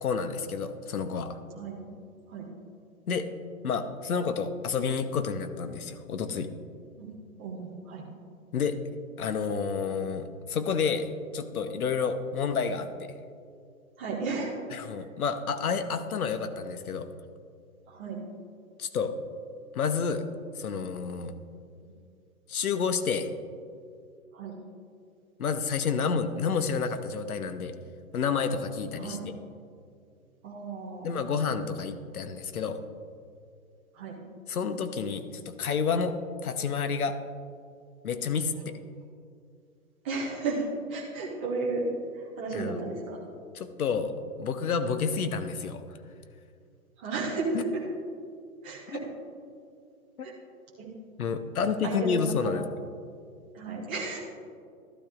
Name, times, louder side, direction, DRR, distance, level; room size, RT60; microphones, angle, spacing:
voice 1, 0.0-1.4 3.1-3.3 3.6-6.5 8.5-8.8 9.2-11.1 11.3-13.1 14.7-17.1 18.8-19.1 19.7-20.2 20.5-21.3 22.5-23.3 25.4-27.7 28.1-29.2 31.0-32.8 34.5-36.1 36.4-37.2 38.0-38.8 42.5-42.8 43.5-44.1 44.4-45.8 47.5-47.6 48.9-49.0 50.2-50.3 51.2-52.6, left 5 dB, 75° left, 10 dB, 0.9 m, -29 dB
voice 2, 7.4-8.0 14.0-14.6 17.9-18.2 24.3-24.5 29.0-29.2 30.4-31.2 33.9-34.2 40.0-41.9 42.1-43.2 47.0-47.8 48.6-49.0 50.2-50.3 50.8-50.9 51.8-52.6 53.5-54.2, right 3 dB, 10° right, -4 dB, 0.5 m, -33 dB
12.5 x 12.0 x 2.4 m, 2.3 s
hypercardioid pair, 145°, 44 cm